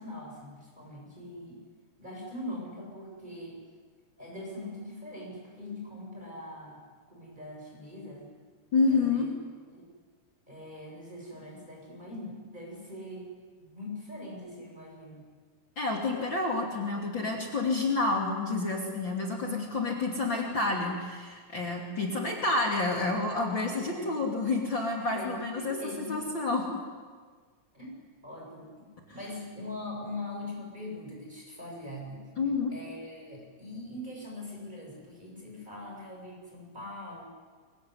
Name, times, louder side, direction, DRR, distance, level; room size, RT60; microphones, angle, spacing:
voice 1, 0.0-1.6 2.0-3.6 4.2-6.8 7.1-8.3 8.9-9.3 9.7-9.9 10.5-13.3 13.6-15.3 19.4-19.9 21.9-22.1 23.6-24.1 25.1-26.1 27.7-27.9 28.2-28.9 29.1-32.2 32.7-37.2, left 1 dB, 15° right, -2 dB, 7.5 m, -42 dB
voice 2, 8.7-9.3 15.8-26.8 32.4-32.7, left 3 dB, 40° left, -1 dB, 3.3 m, -29 dB
23.5 x 23.0 x 9.7 m, 1.5 s
omnidirectional pair, 3.4 m